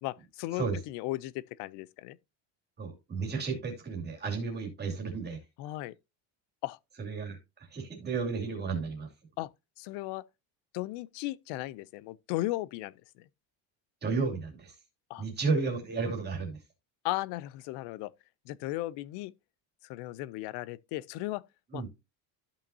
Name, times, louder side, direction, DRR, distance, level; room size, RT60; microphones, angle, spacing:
voice 1, 0.0-1.3 1.6-2.2 5.6-5.9 6.6-6.8 9.4-9.5 9.8-10.2 10.7-12.9 15.1-15.2 17.0-18.1 18.5-19.3 19.9-21.4 21.7-21.8, left 17 dB, 60° left, 0.6 m, -36 dB
voice 2, 2.8-5.4 7.0-7.4 7.7-9.1 14.0-14.7 15.2-16.6 21.7-21.9, right 4 dB, 20° right, 2.6 m, -32 dB
13.5 x 5.7 x 2.7 m
cardioid pair, 175°, 45 cm